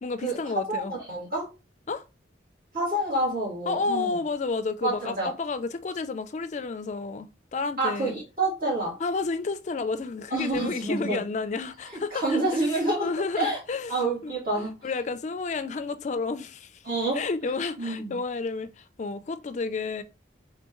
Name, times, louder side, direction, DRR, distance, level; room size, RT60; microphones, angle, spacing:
voice 1, 0.0-0.9 1.9-2.0 3.7-8.1 9.0-12.4 13.0-13.9 14.2-14.3 14.8-16.8 17.1-20.0, left 4 dB, 40° left, 0.4 m, -31 dB
voice 2, 0.7-1.5 2.7-4.1 4.8-5.3 7.8-9.0 10.3-11.2 11.9-13.6 13.9-14.7 16.8-17.2 17.8-18.2, right 2 dB, 55° right, 3.0 m, -28 dB
4.4 x 3.8 x 3.0 m
head